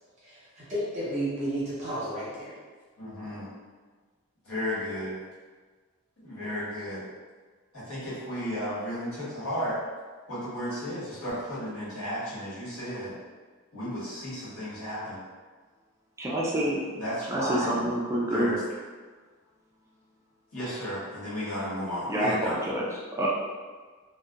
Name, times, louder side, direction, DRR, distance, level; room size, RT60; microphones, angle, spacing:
voice 1, 0.2-2.5, right 1 dB, 30° right, -9 dB, 0.8 m, -32 dB
voice 2, 3.0-3.5 4.4-5.1 6.2-7.0 7.7-9.8 10.3-13.1 13.7-15.2 16.9-17.7 18.2-18.6 20.5-22.6, equal, 70° left, -10 dB, 1.2 m, -33 dB
voice 3, 16.2-16.8 17.3-18.5 22.1-22.8 23.2-23.3, right 1 dB, 15° right, -4 dB, 0.3 m, -27 dB
2.7 x 2.1 x 2.3 m, 1.4 s
head